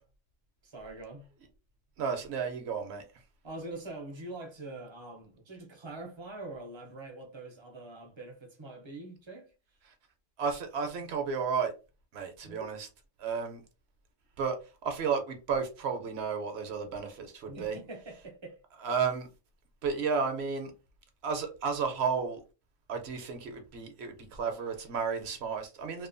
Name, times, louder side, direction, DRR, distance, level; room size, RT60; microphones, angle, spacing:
voice 1, 0.6-1.3 3.4-9.5 12.4-12.7 17.5-18.6, right 2 dB, 40° right, 0.4 m, -44 dB
voice 2, 2.0-3.0 10.4-11.7 12.1-12.9 13.2-13.6 14.4-14.6 14.8-17.8 18.8-19.3 19.8-20.7 21.2-22.4 22.9-26.1, right 5 dB, 65° right, 0.7 m, -32 dB
2.9 x 2.1 x 2.4 m
omnidirectional pair, 1.3 m